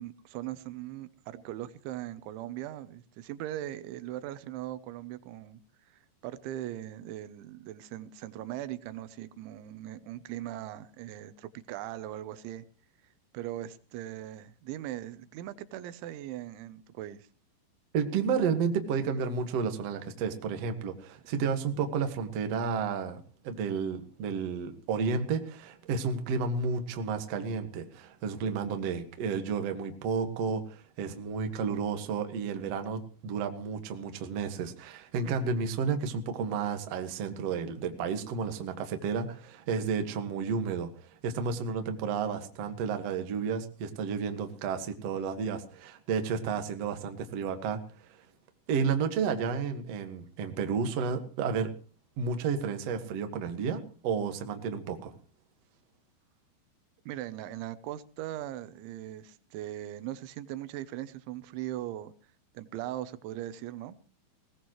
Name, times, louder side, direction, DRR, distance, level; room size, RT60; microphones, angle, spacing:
voice 1, 0.0-5.6 5.9-12.6 13.3-17.3 57.1-62.1 62.5-64.0, right 13 dB, 85° right, 15 dB, 3.3 m, -39 dB
voice 2, 17.9-48.1 48.7-51.7 52.2-55.1, right 5 dB, 55° right, 6 dB, 1.8 m, -32 dB
20.5 x 18.5 x 3.1 m, 0.37 s
omnidirectional pair, 5.3 m